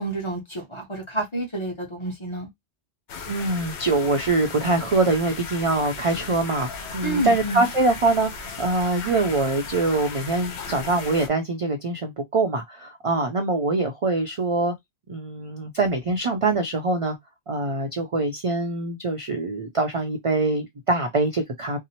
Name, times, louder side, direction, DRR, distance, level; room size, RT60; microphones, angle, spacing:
voice 1, 0.0-2.5 7.0-7.7, right 2 dB, 25° left, 0.9 m, -29 dB
sound 1, 3.1-11.3, left 4 dB, 70° left, 0.9 m, -36 dB
voice 2, 3.3-6.7 6.9-14.7 15.1-17.2 17.5-21.8, right 3 dB, 50° right, 0.4 m, -24 dB
2.7 x 2.0 x 2.8 m
omnidirectional pair, 1.2 m